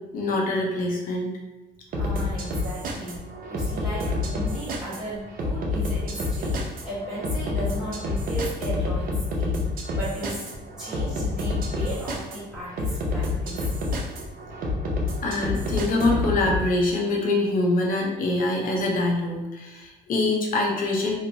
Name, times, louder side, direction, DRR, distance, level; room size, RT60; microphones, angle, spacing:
voice 1, 0.1-1.4 15.2-21.2, left 2 dB, 55° left, -1 dB, 0.7 m, -24 dB
voice 2, 1.9-10.5 10.8-13.7, right 1 dB, 5° right, -10 dB, 1.3 m, -35 dB
sound 1, 1.9-16.6, left 2 dB, 55° right, 0.6 m, -28 dB
3.0 x 2.1 x 2.7 m, 1.1 s
cardioid pair, 110°, 17 cm